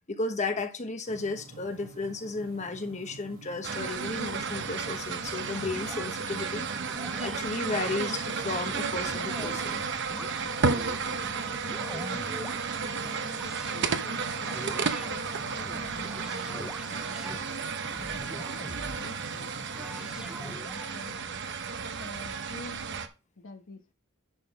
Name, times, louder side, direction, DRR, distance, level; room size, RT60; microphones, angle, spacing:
voice 1, 0.1-6.7 7.0-9.8, left 3 dB, 35° left, 1.0 m, -34 dB
sound 1, 1.0-20.5, right 3 dB, 85° right, 2.3 m, -49 dB
sound 2, 3.6-23.1, right 5 dB, 60° right, 0.9 m, -33 dB
sound 3, 5.5-6.2 6.9-7.4 7.8-9.7 10.1-11.0 11.5-12.6 13.3-13.9 14.4-15.1 15.6-17.4 17.9-19.2 19.7-20.9, equal, 5° right, 0.5 m, -44 dB
voice 2, 10.2-12.3 12.8-14.6 15.1-17.7 18.0-19.5 20.0-20.6 20.9-21.4 22.0-22.9 23.4-23.9, left 2 dB, 65° left, 1.1 m, -48 dB
10.5 x 4.0 x 5.2 m
head